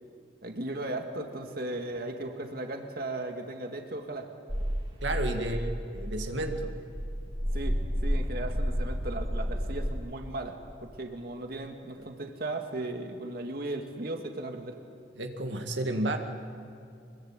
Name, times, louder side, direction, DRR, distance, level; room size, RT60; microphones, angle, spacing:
voice 1, 0.4-4.3 5.3-5.8 7.5-14.8, right 2 dB, 55° right, 4 dB, 2.0 m, -37 dB
sound 1, 4.5-9.9, equal, 30° right, 3.0 m, -31 dB
voice 2, 5.0-5.6 5.9-6.7 15.2-16.2, right 1 dB, 85° right, 4 dB, 2.0 m, -31 dB
25.5 x 22.5 x 8.9 m, 2.4 s
head